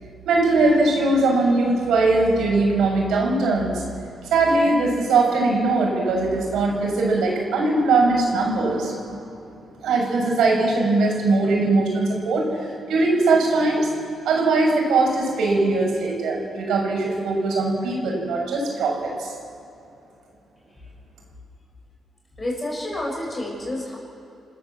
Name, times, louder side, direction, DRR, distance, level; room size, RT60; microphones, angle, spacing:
voice 1, 0.2-3.8 4.3-9.2 9.8-13.9 14.2-19.3, right 3 dB, 85° right, -1 dB, 6.6 m, -20 dB
voice 2, 22.4-24.0, left 1 dB, 20° left, -1 dB, 7.2 m, -29 dB
28.0 x 14.5 x 7.5 m, 2.7 s
cardioid pair, 125°, 0 cm